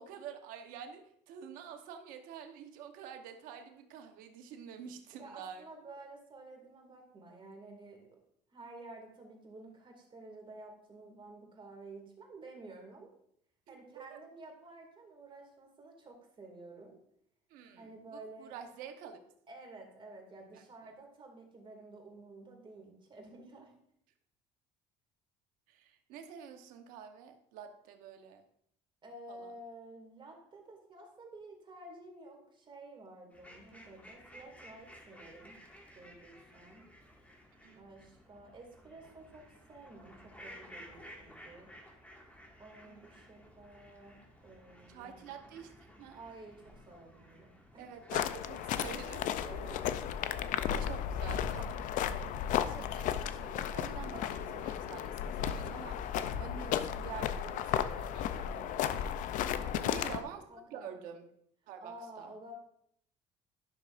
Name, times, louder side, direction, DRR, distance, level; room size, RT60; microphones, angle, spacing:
voice 1, 0.0-5.6 13.7-14.2 17.5-19.2 20.5-20.6 25.7-28.4 29.3-29.5 37.6-37.9 42.8-43.2 44.9-45.7 46.0-46.2 47.8-49.3 50.7-51.7 52.5-59.0 59.8-60.4 60.7-61.3 61.7-62.3, right 7 dB, 80° right, 6 dB, 1.0 m, -48 dB
voice 2, 5.1-8.2 8.5-13.1 13.7-17.0 17.8-18.6 19.5-23.7 29.0-35.6 36.0-36.9 37.7-41.7 42.6-45.5 46.1-47.9 49.3-50.1 59.6-61.1 61.8-62.5, right 2 dB, 35° right, 2 dB, 2.3 m, -52 dB
sound 1, 33.3-52.2, equal, 10° left, 1.9 m, -56 dB
sound 2, 48.1-60.2, left 9 dB, 65° left, 0.5 m, -34 dB
11.0 x 6.3 x 2.5 m, 0.71 s
supercardioid pair, 85°, 14 cm